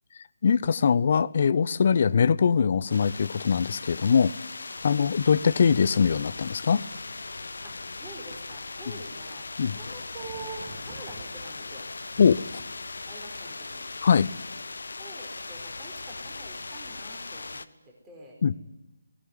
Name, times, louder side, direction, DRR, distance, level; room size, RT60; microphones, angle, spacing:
voice 1, 0.4-4.3 4.8-6.8 8.9-9.0 9.6-9.8 12.2-12.5 14.0-14.3 18.4-18.6, left 6 dB, 40° left, 19 dB, 0.7 m, -22 dB
sound 1, 2.9-17.7, left 3 dB, 60° left, 1.0 m, -39 dB
voice 2, 7.6-11.8 13.1-13.9 15.0-17.7 18.0-18.3, right 3 dB, 10° right, -1 dB, 4.5 m, -46 dB
sound 2, 10.2-13.1, right 6 dB, 25° right, 1.8 m, -49 dB
19.5 x 19.0 x 9.5 m, 0.99 s
figure-of-eight pair, 150°, 0 cm